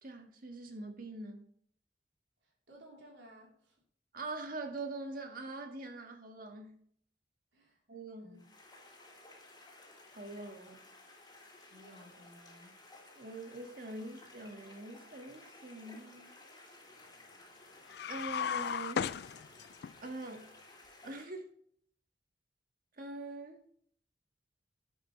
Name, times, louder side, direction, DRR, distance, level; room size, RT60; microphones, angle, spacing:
voice 1, 0.0-1.4 4.1-6.8 7.9-8.4 10.1-10.9 13.1-16.3 18.1-19.1 20.0-20.5 21.0-21.5 23.0-23.6, right 2 dB, 55° right, 1.7 m, -44 dB
voice 2, 2.4-3.8 7.5-7.8 8.2-8.5 11.7-12.7, equal, 80° right, 3.5 m, -57 dB
sound 1, 8.3-21.2, left 2 dB, 25° left, 2.9 m, -56 dB
sound 2, 17.9-19.9, left 7 dB, 65° left, 0.4 m, -35 dB
10.5 x 8.0 x 3.2 m
head